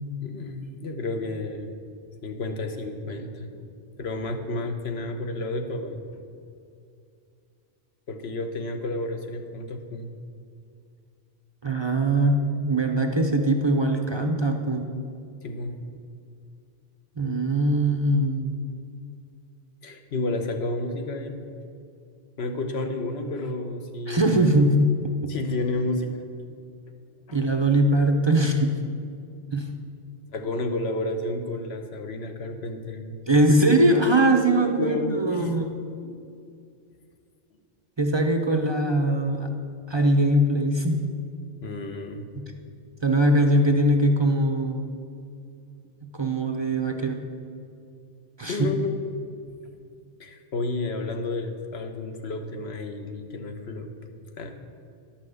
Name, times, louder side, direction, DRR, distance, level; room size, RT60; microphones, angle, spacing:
voice 1, 0.2-1.7 2.2-3.7 4.0-6.2 8.1-10.1 15.4-15.7 19.8-21.4 22.4-24.4 25.3-26.3 27.3-27.4 30.3-33.2 33.5-33.8 34.0-34.1 34.6-35.5 36.0-36.1 41.6-42.3 48.5-49.0 50.2-53.9 54.4-54.6, left 2 dB, 65° left, 6 dB, 1.2 m, -31 dB
voice 2, 11.6-14.9 17.2-18.7 24.1-25.3 27.3-28.8 29.5-29.7 33.3-35.8 38.0-39.5 39.9-41.1 42.3-42.4 43.0-44.9 46.0-47.2 48.4-48.7, right 1 dB, 30° right, 4 dB, 0.6 m, -22 dB
11.5 x 5.9 x 7.8 m, 2.4 s
omnidirectional pair, 1.2 m